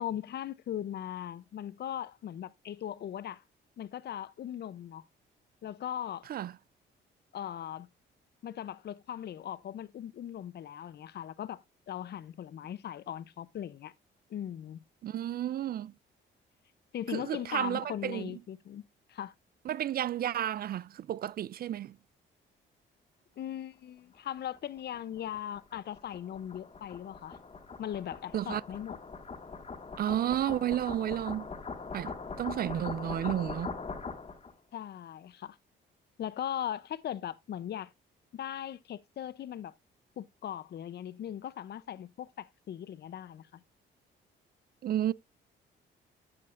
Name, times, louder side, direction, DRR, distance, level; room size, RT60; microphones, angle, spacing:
voice 1, 0.0-3.4 3.8-5.0 5.6-6.3 7.3-7.9 8.4-13.9 14.3-14.8 16.9-18.8 19.1-19.3 23.4-27.4 27.8-29.0 34.7-35.6 36.2-37.9 38.3-39.7 40.2-43.6, left 10 dB, 55° left, 0.6 m, -39 dB
voice 2, 15.0-15.9 17.1-18.3 19.7-22.0 28.3-28.6 30.0-31.5 31.9-33.7 44.8-45.1, right 11 dB, 50° right, 0.4 m, -32 dB
sound 1, 24.5-34.5, left 4 dB, 30° left, 1.7 m, -42 dB
11.5 x 7.6 x 2.5 m
cardioid pair, 90°, 20 cm